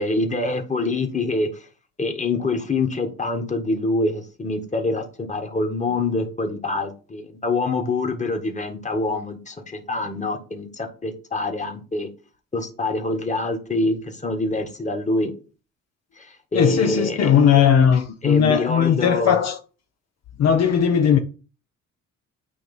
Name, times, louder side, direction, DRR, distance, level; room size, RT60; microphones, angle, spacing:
voice 1, 0.0-1.5 2.0-12.1 12.5-15.3 16.2-17.3 18.2-19.4, left 2 dB, 25° left, 1.7 m, -25 dB
voice 2, 16.5-19.6 20.4-21.2, left 8 dB, 60° left, 0.7 m, -18 dB
8.5 x 3.1 x 5.5 m
cardioid pair, 90°, 30 cm